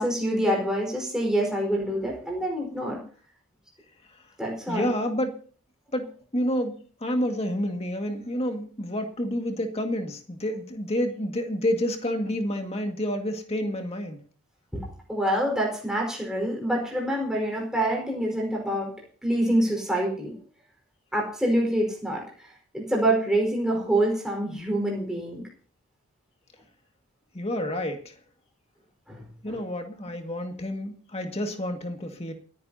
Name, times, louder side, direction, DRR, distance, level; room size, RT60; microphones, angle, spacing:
voice 1, 0.0-3.0 4.4-4.9 14.7-18.9 19.2-20.3 21.1-22.2 22.7-25.4 29.1-29.6, right 1 dB, 5° right, -2 dB, 4.8 m, -26 dB
voice 2, 4.7-5.4 5.9-14.2 27.3-28.2 29.4-32.3, equal, 25° left, 4 dB, 2.0 m, -29 dB
28.5 x 10.0 x 2.8 m, 0.43 s
head